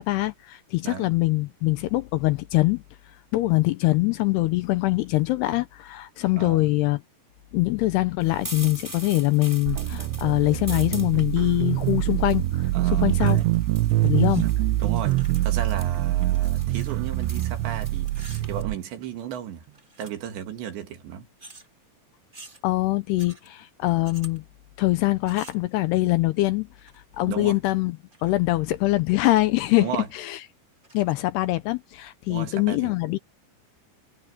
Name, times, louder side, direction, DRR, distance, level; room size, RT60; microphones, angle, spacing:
voice 1, 0.0-2.8 3.3-7.0 7.5-13.4 14.0-14.5 22.6-24.4 24.8-26.7 27.2-28.0 28.2-30.4 30.9-33.2, left 19 dB, 80° left, 2.5 m, -23 dB
voice 2, 6.3-6.7 12.7-13.5 14.4-18.1 18.5-19.6 20.0-21.3 27.3-27.6 29.8-30.1 32.3-32.9, right 9 dB, 75° right, 4.3 m, -34 dB
sound 1, 8.2-18.6, right 1 dB, 5° right, 4.1 m, -43 dB
sound 2, 9.7-18.8, right 16 dB, 90° right, 2.9 m, -24 dB
sound 3, 13.1-14.5 14.7-17.7 18.0-19.2 19.6-20.4 21.4-21.7 22.3-22.6 23.2-23.5 24.0-24.4 25.2-25.7 26.8-27.2 27.9-28.5 28.8-28.9 29.2-29.6 30.0-30.1 30.8-31.2, right 2 dB, 45° right, 0.6 m, -49 dB
omnidirectional pair, 5.2 m